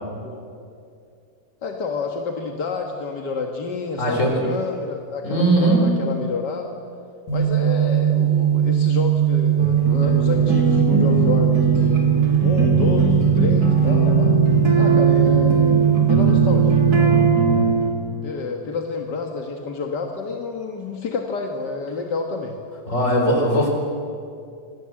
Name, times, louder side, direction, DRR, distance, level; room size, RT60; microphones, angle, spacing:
voice 1, 0.2-0.7 1.6-6.8 7.3-12.1 12.4-14.3 14.8-17.2 18.2-22.6, left 4 dB, 50° left, 3 dB, 1.4 m, -29 dB
voice 2, 4.0-4.4 5.2-5.9 22.9-23.7, right 1 dB, 20° left, 1 dB, 4.5 m, -19 dB
sound 1, 7.3-17.3, right 10 dB, 75° left, 4.7 m, -19 dB
sound 2, 9.6-17.9, right 2 dB, 30° right, 3.4 m, -21 dB
26.5 x 18.5 x 7.7 m, 2.4 s
omnidirectional pair, 3.7 m